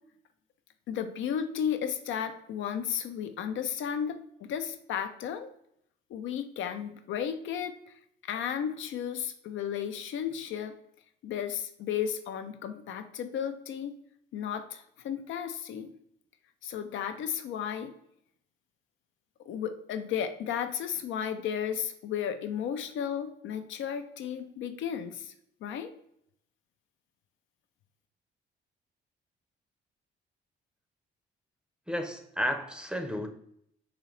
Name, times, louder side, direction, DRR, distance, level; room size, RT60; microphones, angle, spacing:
voice 1, 0.9-5.5 6.1-7.8 8.2-10.7 11.2-14.0 14.3-15.9 16.6-17.9 19.5-25.3 25.6-25.9, left 8 dB, 75° left, 8 dB, 0.5 m, -34 dB
voice 2, 31.9-33.3, equal, 5° right, 5 dB, 0.6 m, -32 dB
3.9 x 2.8 x 3.1 m, 0.70 s
cardioid pair, 90°, 20 cm